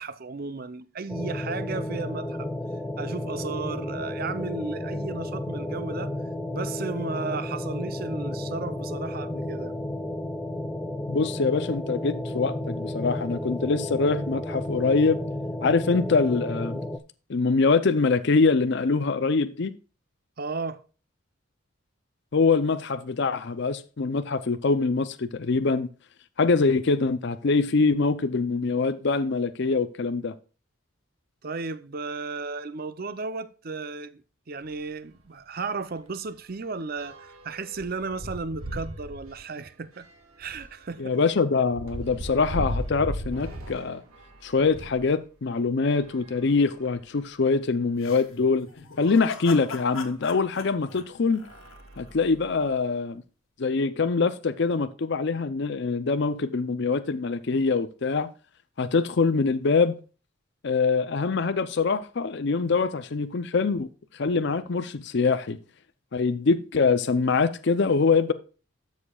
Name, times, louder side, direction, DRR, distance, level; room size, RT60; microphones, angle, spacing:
voice 1, 0.0-2.5 3.0-6.2 6.5-9.7 20.4-20.8 31.4-34.2 34.5-40.1 40.4-41.2, right 4 dB, 45° right, 0.6 m, -34 dB
sound 1, 1.1-17.0, left 1 dB, 10° left, 0.5 m, -32 dB
voice 2, 11.1-15.2 15.6-16.8 17.3-19.7 22.3-25.9 26.4-30.3 41.0-44.0 44.4-48.7 49.0-51.4 52.0-53.2 53.6-58.3 58.8-60.0 60.6-63.9 64.1-65.6 66.1-68.3, left 4 dB, 55° left, 0.5 m, -24 dB
sound 2, 34.6-34.8 35.2-35.3 35.6-45.1 45.8-47.2 47.8-47.9 48.2-48.3 50.0-50.1 50.7-51.0 51.4-52.7, equal, 85° right, 1.8 m, -38 dB
sound 3, 48.0-52.1, left 5 dB, 75° left, 1.5 m, -39 dB
12.5 x 6.5 x 2.3 m
head